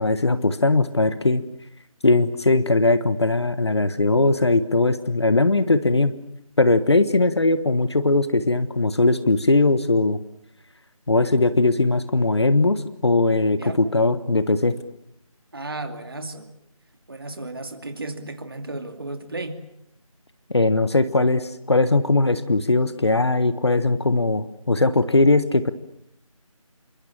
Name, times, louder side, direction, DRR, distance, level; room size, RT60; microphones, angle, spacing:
voice 1, 0.0-1.4 2.0-6.1 6.6-10.2 11.1-14.7 20.5-25.7, left 2 dB, 45° left, 12 dB, 1.3 m, -20 dB
voice 2, 15.5-16.5 17.1-19.6, right 2 dB, 40° right, 7 dB, 2.6 m, -34 dB
28.0 x 24.0 x 7.4 m, 0.79 s
figure-of-eight pair, 170°, 18 cm